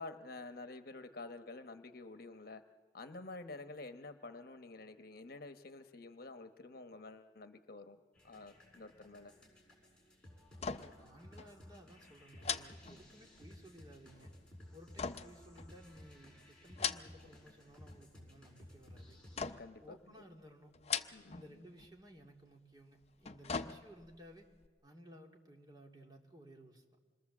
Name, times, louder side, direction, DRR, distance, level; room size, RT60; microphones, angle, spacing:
voice 1, 0.0-2.6 2.9-8.0 8.2-9.3 19.6-20.0 21.1-21.6, left 3 dB, 60° left, 8 dB, 1.1 m, -49 dB
sound 1, 8.1-19.4, left 1 dB, 5° left, 6.8 m, -57 dB
sound 2, 10.5-11.1 11.4-11.5 12.4-13.5 15.0-16.1 16.6-17.4 17.7-18.3 19.4-19.9 20.7-21.5 21.8-21.9 23.0-24.2 24.6-24.7, left 6 dB, 35° left, 0.7 m, -40 dB
voice 2, 10.7-14.3 14.7-19.2 19.8-20.7 21.3-24.5 24.8-26.8, equal, 25° right, 1 dB, 2.5 m, -57 dB
26.5 x 22.0 x 7.3 m, 1.4 s
head